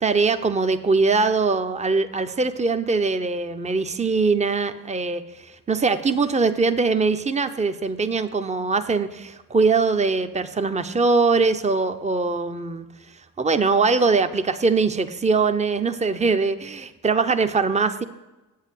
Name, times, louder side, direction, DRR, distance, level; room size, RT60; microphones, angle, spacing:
voice 1, 0.0-5.2 5.7-12.9 13.4-18.0, right 4 dB, 15° right, 9 dB, 0.6 m, -22 dB
8.2 x 5.7 x 7.4 m, 1.1 s
supercardioid pair, 45°, 39 cm